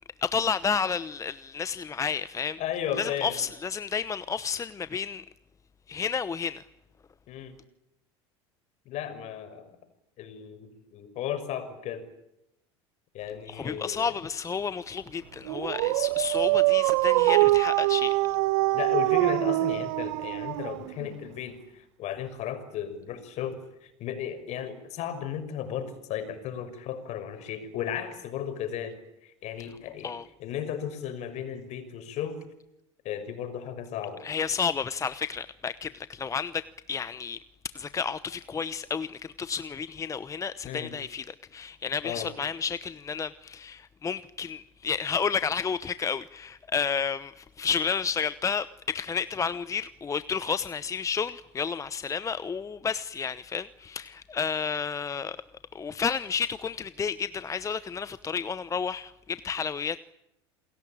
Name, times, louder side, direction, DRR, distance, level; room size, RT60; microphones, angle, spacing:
voice 1, 0.2-2.6 3.0-5.2 5.9-6.6 13.5-18.1 30.0-30.2 34.2-37.4 37.7-55.4 55.7-60.0, left 6 dB, 20° left, 0.9 m, -31 dB
voice 2, 2.6-3.4 7.3-7.6 8.9-9.8 10.2-12.1 13.1-14.2 18.7-29.0 29.2-30.1 30.4-32.4 33.0-34.2 40.6-40.9 42.0-42.3, left 9 dB, 50° left, 5.9 m, -35 dB
Dog, 15.5-21.1, right 19 dB, 70° right, 1.0 m, -24 dB
29.0 x 21.5 x 8.9 m
hypercardioid pair, 85°, 14 cm